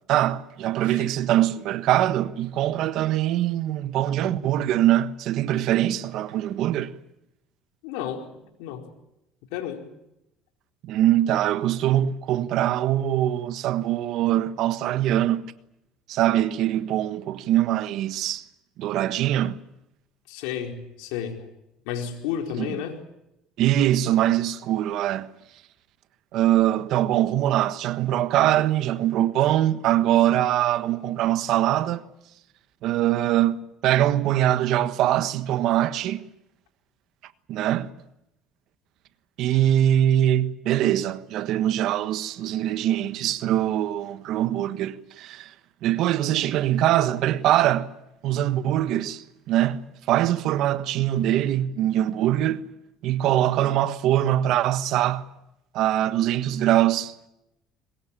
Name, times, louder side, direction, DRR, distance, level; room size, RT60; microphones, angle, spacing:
voice 1, 0.1-6.9 10.8-15.4 16.1-18.4 18.8-19.6 22.6-22.7 23.6-25.3 26.3-32.1 32.8-36.3 37.5-37.9 39.4-45.5 45.8-47.9 48.2-52.7 53.0-55.3 55.7-57.3, right 12 dB, 65° right, 1.4 m, -23 dB
voice 2, 7.8-8.8 9.5-9.8 20.3-21.4 21.8-23.0, left 8 dB, 85° left, 4.6 m, -32 dB
23.0 x 20.5 x 8.8 m
supercardioid pair, 105°, 0 cm